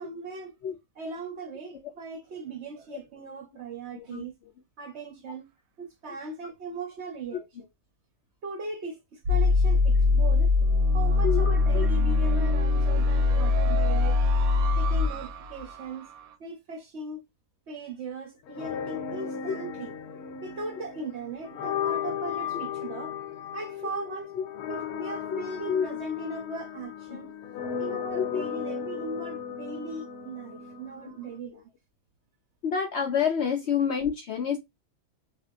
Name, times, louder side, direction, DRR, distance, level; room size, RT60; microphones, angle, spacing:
voice 1, 0.0-0.5 1.0-4.3 4.8-5.5 5.8-7.5 8.4-14.2 14.8-16.1 16.4-17.2 17.7-23.2 23.5-24.3 24.7-27.3 27.8-31.7, right 3 dB, 60° right, 0.8 m, -39 dB
voice 2, 3.9-4.5 11.2-11.9 13.7-13.8 19.5-19.6 24.4-24.5 25.3-25.4 25.7-25.9 27.1-27.2 28.1-28.4 31.1-31.2 32.6-34.6, left 7 dB, 65° left, 0.6 m, -28 dB
sound 1, 9.3-16.2, left 3 dB, 80° right, 1.1 m, -23 dB
sound 2, 18.5-31.4, left 8 dB, 85° left, 1.1 m, -35 dB
3.4 x 2.2 x 2.5 m
omnidirectional pair, 1.6 m